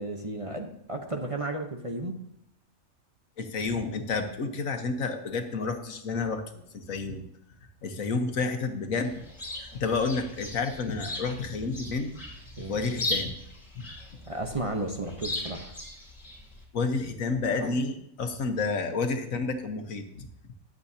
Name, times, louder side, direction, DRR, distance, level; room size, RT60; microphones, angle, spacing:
voice 1, 0.0-2.2 12.6-12.8 14.3-15.7, right 2 dB, 25° right, 3 dB, 0.9 m, -33 dB
voice 2, 3.4-7.2 7.8-9.2 9.6-12.1 12.7-13.4 13.7-13.9 16.7-20.3, left 4 dB, 75° left, 6 dB, 1.5 m, -30 dB
Chirp tweet, 9.0-16.6, left 2 dB, 30° left, 2.6 m, -38 dB
21.5 x 7.9 x 2.8 m, 0.77 s
omnidirectional pair, 1.4 m